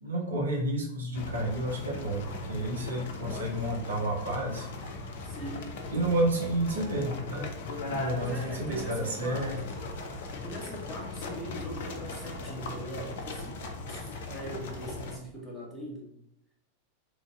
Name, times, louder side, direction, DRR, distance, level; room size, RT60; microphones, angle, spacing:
voice 1, 0.0-4.7 5.9-7.5 7.9-9.6, right 1 dB, 70° right, -2 dB, 0.7 m, -30 dB
sound 1, 1.1-15.2, left 3 dB, 55° left, 0.4 m, -38 dB
voice 2, 3.2-3.5 5.2-5.8 8.2-9.8 10.4-16.2, equal, 5° right, -4 dB, 0.9 m, -41 dB
3.1 x 2.5 x 2.4 m, 0.80 s
figure-of-eight pair, 90°, 0 cm